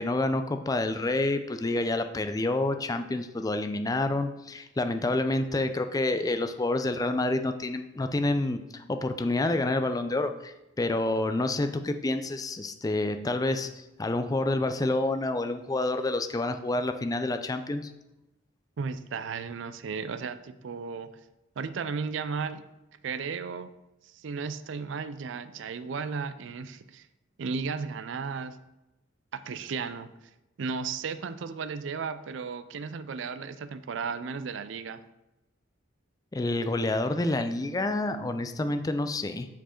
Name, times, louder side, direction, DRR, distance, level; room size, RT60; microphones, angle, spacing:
voice 1, 0.0-17.9 36.3-39.5, left 2 dB, 20° left, 8 dB, 0.4 m, -28 dB
voice 2, 18.8-21.1 21.6-22.6 23.0-23.7 24.0-27.1 27.4-28.6 29.3-30.1 30.6-35.0, right 5 dB, 65° right, 12 dB, 0.4 m, -34 dB
7.2 x 4.6 x 4.4 m, 0.95 s
head